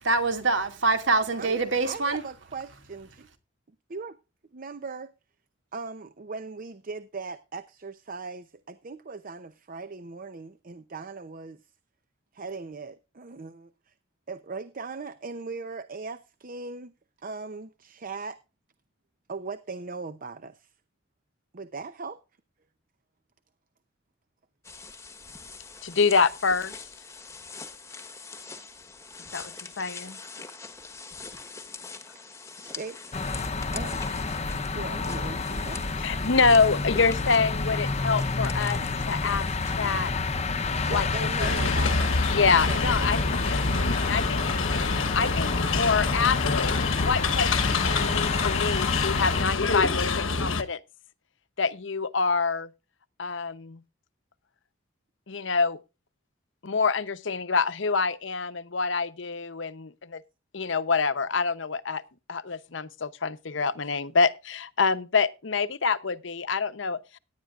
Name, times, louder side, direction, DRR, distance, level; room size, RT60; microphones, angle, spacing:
voice 1, 0.0-2.2, right 3 dB, 65° right, 2.3 m, -24 dB
voice 2, 1.8-3.3 3.9-4.1 4.5-5.1 5.7-11.6 12.3-13.9 14.3-16.9 17.2-18.4 19.3-20.7 21.5-22.2 30.5-30.6 32.1-32.2 32.6-33.0 33.7-34.0 34.7-35.9 40.9-42.2 42.7-42.8, right 4 dB, 45° right, 0.7 m, -39 dB
sound 1, 24.6-40.1, left 4 dB, 15° left, 1.2 m, -44 dB
voice 3, 25.8-26.8 29.3-29.5 29.8-30.2 36.0-39.5 39.8-40.1 40.9-41.6 42.3-43.4 43.8-44.5 44.9-50.8 51.6-52.7 53.2-53.8 55.3-55.8 56.6-60.2 60.5-62.0 62.3-67.2, left 4 dB, 65° left, 0.8 m, -26 dB
sound 2, 33.1-49.4, left 3 dB, 35° left, 0.8 m, -29 dB
sound 3, 41.4-50.6, left 4 dB, 90° left, 1.2 m, -26 dB
18.0 x 10.5 x 2.5 m
head